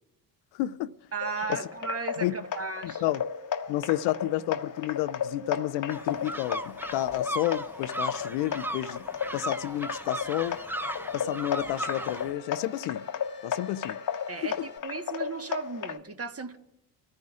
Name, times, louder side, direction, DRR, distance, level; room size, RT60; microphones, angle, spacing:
voice 1, 0.5-0.9 1.5-1.6 2.2-2.4 2.8-3.2 3.7-9.0 9.3-10.6 11.1-13.1 13.4-14.0 14.4-14.5, left 14 dB, 70° left, 0.6 m, -31 dB
voice 2, 1.1-3.0 14.3-16.6, right 4 dB, 30° right, 1.4 m, -35 dB
sound 1, 1.2-16.0, left 7 dB, 45° left, 1.1 m, -34 dB
sound 2, 5.9-12.3, right 1 dB, 5° right, 0.7 m, -37 dB
sound 3, 9.2-14.8, left 5 dB, 25° left, 1.3 m, -53 dB
30.0 x 14.0 x 2.5 m
hypercardioid pair, 45°, 45 cm